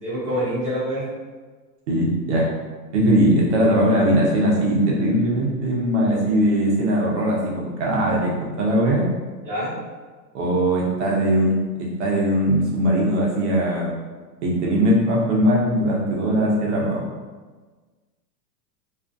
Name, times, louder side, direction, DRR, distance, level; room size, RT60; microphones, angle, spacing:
voice 1, 0.0-1.1 9.4-9.7, equal, 15° right, -12 dB, 0.8 m, -26 dB
voice 2, 1.9-2.5 2.9-9.0 10.3-13.9 14.4-17.0, equal, 45° right, -3 dB, 0.6 m, -20 dB
2.4 x 2.4 x 2.4 m, 1.4 s
supercardioid pair, 165°, 50 cm